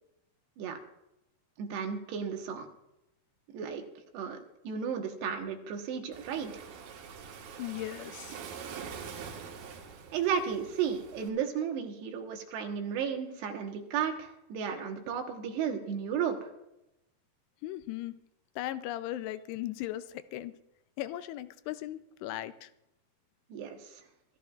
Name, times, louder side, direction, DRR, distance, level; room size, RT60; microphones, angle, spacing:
voice 1, 1.6-2.7 3.5-3.8 4.1-4.4 4.6-6.5 10.1-16.5 23.5-24.0, right 7 dB, 85° right, 4 dB, 3.4 m, -34 dB
Waves surf, 6.1-11.3, right 6 dB, 70° right, 3.2 m, -45 dB
voice 2, 7.6-8.4 17.6-18.2 18.6-20.5 21.0-22.7, left 14 dB, 90° left, 13 dB, 2.7 m, -37 dB
25.0 x 13.5 x 2.4 m, 0.89 s
omnidirectional pair, 4.7 m